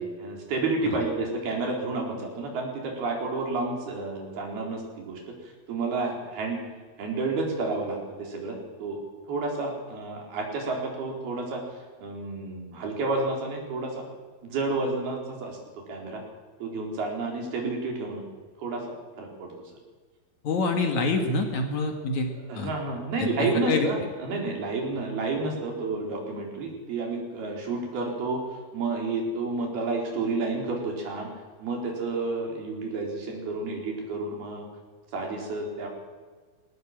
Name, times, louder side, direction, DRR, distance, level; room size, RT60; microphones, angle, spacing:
voice 1, 0.0-5.3 5.7-6.6 7.0-9.0 9.3-11.6 12.0-14.0 14.4-15.6 15.9-16.2 16.6-18.2 18.6-18.8 19.2-19.5 22.3-28.4 28.7-31.3 31.6-34.7 35.1-35.9, right 3 dB, 75° right, 1 dB, 6.0 m, -30 dB
voice 2, 20.4-22.7 23.4-23.9, left 3 dB, 55° left, 4 dB, 2.9 m, -26 dB
21.0 x 18.5 x 7.4 m, 1.5 s
omnidirectional pair, 4.5 m